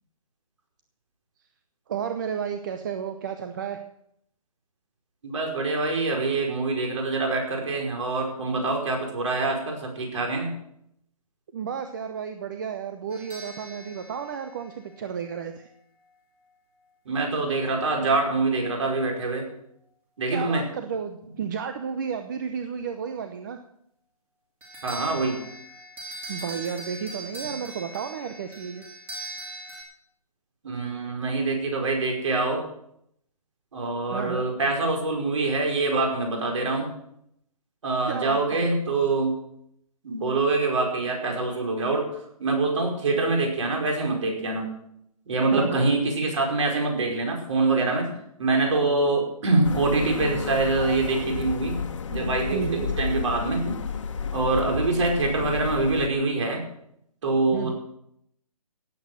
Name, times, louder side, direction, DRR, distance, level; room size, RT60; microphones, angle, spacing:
voice 1, 1.9-3.8 11.5-15.7 20.3-23.6 26.3-28.8 34.1-34.4 38.0-38.8 45.5-45.9 52.5-52.9 57.5-57.7, right 7 dB, 30° right, 7 dB, 0.8 m, -32 dB
voice 2, 5.2-10.5 17.0-19.4 20.2-20.7 24.8-25.4 30.6-32.6 33.7-36.9 37.8-39.3 40.0-42.1 42.4-44.7 45.3-48.1 48.4-51.8 52.1-53.8 54.3-56.6 57.2-57.7, right 3 dB, 55° right, 1 dB, 5.1 m, -25 dB
sound 1, 13.1-15.4 24.6-29.8, right 1 dB, 10° right, 2.8 m, -40 dB
sound 2, 49.6-56.1, left 6 dB, 55° left, 1.5 m, -32 dB
17.0 x 8.4 x 6.4 m, 0.75 s
hypercardioid pair, 160°, 19 cm